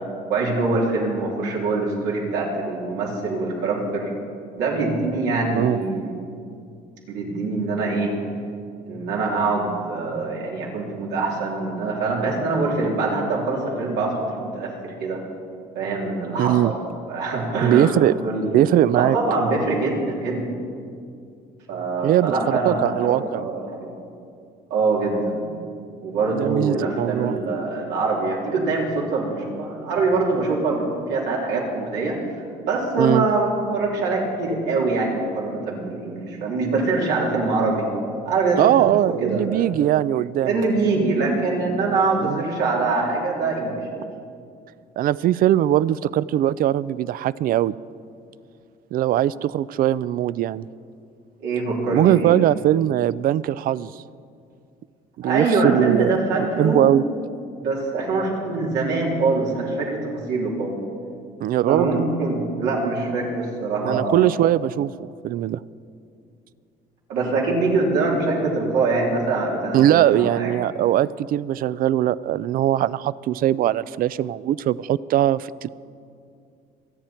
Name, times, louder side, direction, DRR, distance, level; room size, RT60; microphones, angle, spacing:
voice 1, 0.3-4.1 4.6-6.1 7.1-8.2 8.9-15.2 15.8-16.8 17.1-20.5 21.7-24.0 24.7-25.4 26.0-32.2 32.6-37.8 38.2-38.8 39.2-39.7 40.4-44.1 51.4-52.3 55.2-56.9 57.6-60.7 61.7-64.3 67.1-70.5, right 3 dB, 90° right, -3 dB, 3.4 m, -24 dB
voice 2, 16.4-16.7 17.6-18.1 18.5-19.2 22.0-23.4 26.3-27.4 33.0-33.3 38.6-40.6 42.2-42.4 45.0-47.7 48.9-50.7 51.9-53.9 55.2-56.1 56.6-57.0 61.4-61.9 63.8-65.6 69.7-75.7, right 12 dB, 60° right, 19 dB, 0.4 m, -20 dB
27.0 x 9.2 x 4.4 m, 2.4 s
cardioid pair, 110°, 17 cm